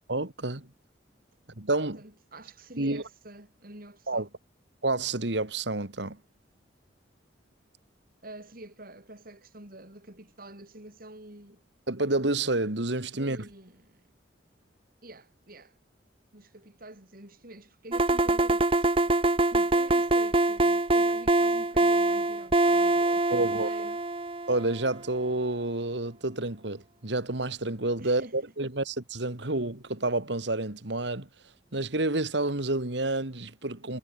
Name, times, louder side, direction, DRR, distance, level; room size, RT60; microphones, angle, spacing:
voice 1, 0.1-0.7 1.6-2.0 2.8-3.0 4.1-4.3 4.8-6.2 11.9-13.5 23.1-23.7 24.5-31.3 31.7-34.0, right 2 dB, 70° right, 2.4 m, -29 dB
voice 2, 1.9-4.3 8.2-11.6 13.1-14.1 15.0-15.8 16.3-19.0 19.4-24.0 28.0-28.5, right 1 dB, 50° right, 5.0 m, -48 dB
sound 1, 17.9-24.8, right 2 dB, 30° right, 1.4 m, -24 dB
head